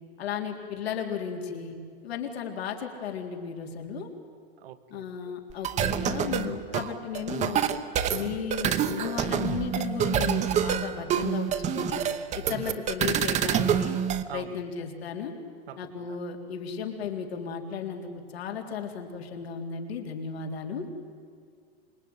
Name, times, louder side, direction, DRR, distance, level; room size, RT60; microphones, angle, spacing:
voice 1, 0.2-1.8 2.0-4.1 4.9-7.6 8.1-12.0 12.3-13.9 14.3-15.3 15.8-20.9, left 7 dB, 85° left, 2 dB, 3.8 m, -34 dB
voice 2, 4.6-5.1 12.4-12.8 14.3-14.6 15.7-16.2, right 11 dB, 70° right, 11 dB, 1.6 m, -44 dB
sound 1, 5.5-14.2, right 8 dB, 25° right, 1.0 m, -27 dB
26.0 x 22.0 x 9.7 m, 2.1 s
supercardioid pair, 145°, 30 cm